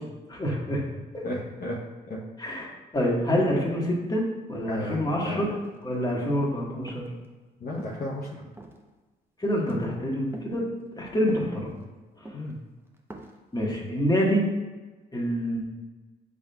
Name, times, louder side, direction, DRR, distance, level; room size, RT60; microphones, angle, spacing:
voice 1, 0.3-0.8 1.1-1.2 2.4-2.7 2.9-4.2 4.5-5.5 5.8-7.1 9.4-10.6 10.9-11.7 12.2-12.3 13.5-14.5 15.1-15.6, equal, 20° left, -3 dB, 1.3 m, -26 dB
voice 2, 1.2-1.8 2.1-2.2 4.7-5.4 7.6-8.4 12.3-12.6, left 1 dB, 50° left, -4 dB, 0.8 m, -33 dB
sound 1, 4.9-5.0 5.3-6.4 6.9-7.3 7.7-8.1 8.5-8.9 9.4-9.7 10.3-10.5 11.3-11.8 12.3-12.5 12.9-13.4, right 1 dB, 10° right, 0.7 m, -44 dB
5.9 x 3.7 x 2.2 m, 1.2 s
supercardioid pair, 65°, 20 cm